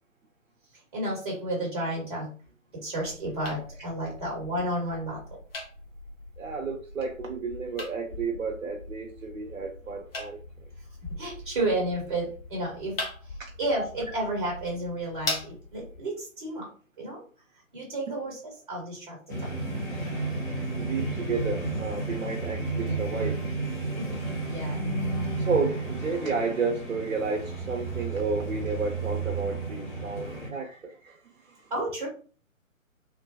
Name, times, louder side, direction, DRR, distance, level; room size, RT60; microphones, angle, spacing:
voice 1, 0.9-2.3 2.7-5.2 11.2-13.0 13.6-16.7 17.0-17.2 17.7-19.5 24.0-24.8 31.7-32.1, right 1 dB, 30° right, -3 dB, 0.9 m, -32 dB
sound 1, 3.0-16.0, left 2 dB, 45° left, 0.6 m, -40 dB
voice 2, 6.4-10.7 20.8-23.4 25.4-31.7, right 4 dB, 70° right, 1 dB, 0.6 m, -32 dB
sound 2, 19.3-30.5, right 3 dB, 60° left, 1.4 m, -32 dB
3.1 x 2.2 x 2.6 m, 0.39 s
figure-of-eight pair, 135°, 41 cm